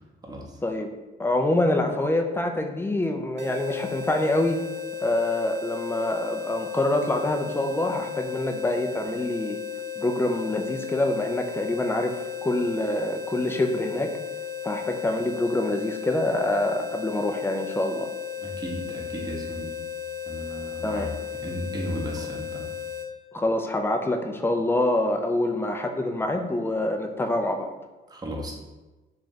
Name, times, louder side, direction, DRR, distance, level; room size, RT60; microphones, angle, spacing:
voice 1, 0.2-0.6 18.4-19.8 20.2-22.7 28.1-28.6, equal, 20° right, -1 dB, 0.8 m, -35 dB
voice 2, 1.2-4.6 5.0-9.6 10.0-14.1 14.6-18.1 20.8-21.1 23.3-27.7, left 1 dB, 10° left, 4 dB, 0.4 m, -26 dB
sound 1, 3.4-23.1, left 9 dB, 65° right, 0.5 m, -35 dB
3.2 x 2.4 x 4.0 m, 1.2 s
cardioid pair, 90°, 20 cm